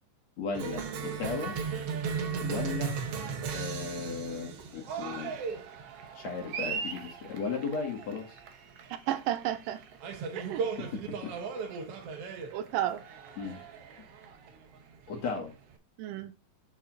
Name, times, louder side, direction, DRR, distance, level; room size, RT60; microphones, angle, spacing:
voice 1, 0.4-1.6 2.4-3.0 3.5-5.4 6.1-8.4 10.8-11.3 13.4-13.6 14.0-14.1 15.1-15.5, left 5 dB, 55° left, 2.4 m, -36 dB
Cheering, 0.5-15.7, right 6 dB, 65° right, 1.5 m, -37 dB
voice 2, 8.9-9.8 10.4-10.7 12.5-13.0 16.0-16.3, right 12 dB, 80° right, 2.4 m, -32 dB
6.7 x 6.0 x 3.8 m
omnidirectional pair, 4.0 m